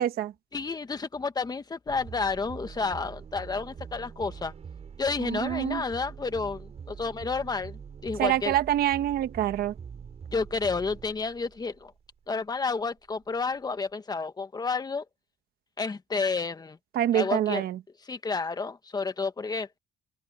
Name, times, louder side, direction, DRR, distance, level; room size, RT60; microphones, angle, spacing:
voice 1, 0.0-0.3 5.2-5.8 8.2-9.7 16.9-17.8, right 12 dB, 65° right, 1.3 m, -26 dB
voice 2, 0.5-4.5 5.0-8.5 10.3-11.9 12.3-15.0 15.8-16.8 17.1-17.6 18.1-19.7, left 4 dB, 25° left, 1.6 m, -30 dB
sound 1, 1.9-12.1, right 6 dB, 40° right, 4.6 m, -44 dB
cardioid pair, 110°, 17 cm